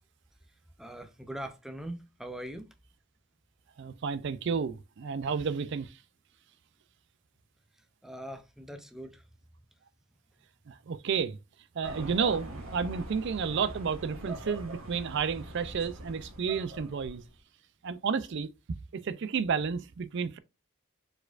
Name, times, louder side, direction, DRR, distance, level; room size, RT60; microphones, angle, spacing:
voice 1, 0.8-2.7 8.0-9.2, right 1 dB, ahead, 0.5 m, -41 dB
voice 2, 3.8-5.9 10.7-11.4 11.8-17.2 17.8-18.5 18.9-20.4, right 6 dB, 60° right, 0.4 m, -31 dB
sound 1, 11.8-17.4, right 1 dB, 80° right, 1.6 m, -43 dB
4.7 x 4.3 x 2.4 m
head